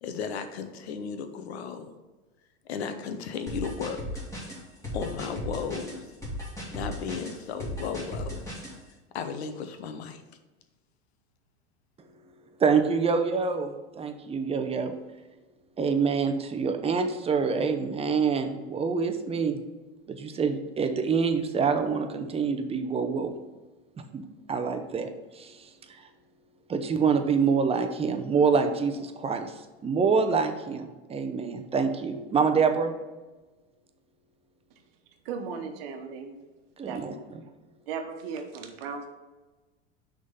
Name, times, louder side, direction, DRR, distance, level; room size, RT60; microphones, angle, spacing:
voice 1, 0.0-1.9 2.6-4.2 4.9-6.1 6.7-8.5 9.1-10.2, left 6 dB, 75° left, 8 dB, 0.9 m, -35 dB
sound 1, 3.5-8.7, left 1 dB, 10° left, 2.4 m, -36 dB
voice 2, 12.6-14.9 15.8-19.6 20.1-23.3 24.1-24.2 24.5-25.6 26.7-29.5 29.8-32.9 36.8-37.1, right 5 dB, 20° right, 7 dB, 0.7 m, -26 dB
voice 3, 35.2-36.3 36.9-37.2 37.9-39.1, right 5 dB, 65° right, 5 dB, 1.2 m, -36 dB
6.2 x 3.8 x 5.6 m, 1.2 s
hypercardioid pair, 100°, 32 cm